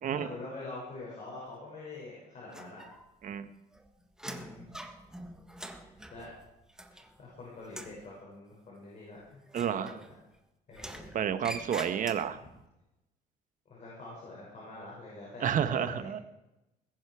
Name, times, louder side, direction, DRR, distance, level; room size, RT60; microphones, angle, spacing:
voice 1, 0.1-2.8 4.2-4.8 5.7-6.3 7.2-10.1 10.7-11.1 12.4-12.5 13.7-16.2, left 2 dB, 45° left, -5 dB, 6.6 m, -45 dB
sound 1, 2.5-3.3 3.6-7.3 7.6-8.0 9.5-10.4 10.7-12.5, right 1 dB, 5° right, 1.5 m, -45 dB
voice 2, 9.5-10.0 11.1-12.4 15.4-16.2, right 8 dB, 50° right, 11 dB, 1.3 m, -30 dB
20.5 x 11.0 x 4.9 m, 0.93 s
cardioid pair, 110°, 17 cm